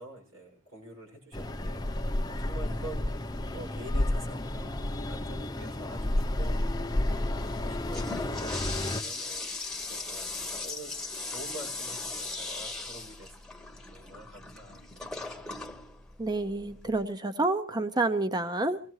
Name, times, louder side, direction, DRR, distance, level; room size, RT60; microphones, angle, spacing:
voice 1, 0.0-15.6, right 1 dB, 85° right, 1 dB, 6.4 m, -47 dB
sound 1, 1.3-9.0, left 1 dB, 20° left, 0.7 m, -31 dB
Toilet flush, 7.7-17.0, left 3 dB, 5° left, 1.0 m, -38 dB
voice 2, 16.2-18.8, right 2 dB, 20° right, 10 dB, 0.7 m, -29 dB
24.5 x 17.5 x 3.2 m, 0.41 s
head